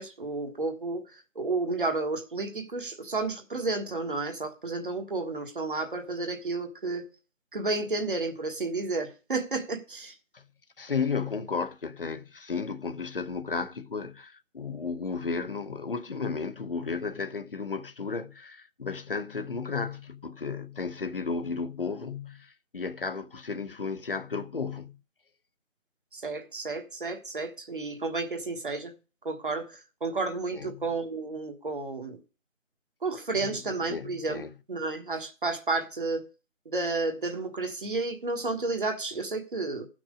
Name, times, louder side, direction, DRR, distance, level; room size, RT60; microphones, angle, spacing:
voice 1, 0.0-7.0 7.5-10.2 26.1-28.9 29.2-32.2 33.0-34.4 34.7-36.2 36.6-39.9, right 3 dB, 40° right, 1.5 m, -31 dB
voice 2, 10.8-25.0 30.5-30.8 33.3-34.5, left 5 dB, 45° left, 1.0 m, -34 dB
14.0 x 6.1 x 5.0 m
figure-of-eight pair, 165°, 39 cm